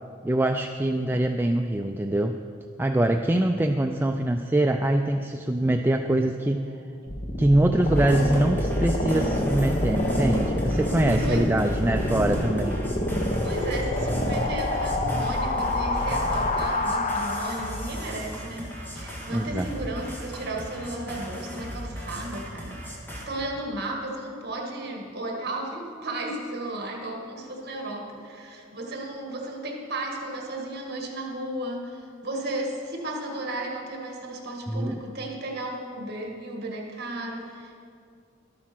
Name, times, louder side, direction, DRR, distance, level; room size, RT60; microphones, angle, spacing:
voice 1, 0.2-2.4 2.8-6.7 7.4-12.8 19.3-19.7 34.7-35.0, right 1 dB, 10° right, 5 dB, 0.3 m, -24 dB
voice 2, 6.4-6.7 11.2-11.8 13.4-37.7, right 1 dB, 55° right, 1 dB, 1.7 m, -34 dB
sound 1, 7.1-18.0, left 1 dB, 40° left, 0.9 m, -27 dB
sound 2, 7.8-23.3, equal, 10° left, 1.7 m, -38 dB
12.5 x 8.6 x 6.0 m, 2.3 s
head